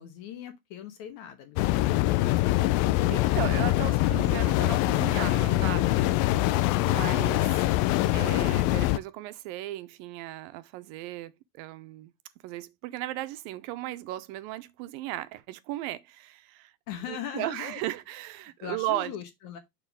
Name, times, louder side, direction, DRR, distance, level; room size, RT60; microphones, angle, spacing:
voice 1, 0.0-2.9 16.9-17.8 18.6-19.6, left 10 dB, 65° left, 2.2 m, -41 dB
sound 1, 1.6-9.0, left 17 dB, 85° left, 2.3 m, -24 dB
voice 2, 3.1-6.2 6.9-7.6 8.1-12.1 12.4-16.7 17.1-19.1, right 15 dB, 85° right, 2.3 m, -36 dB
7.1 x 5.6 x 3.4 m
omnidirectional pair, 4.1 m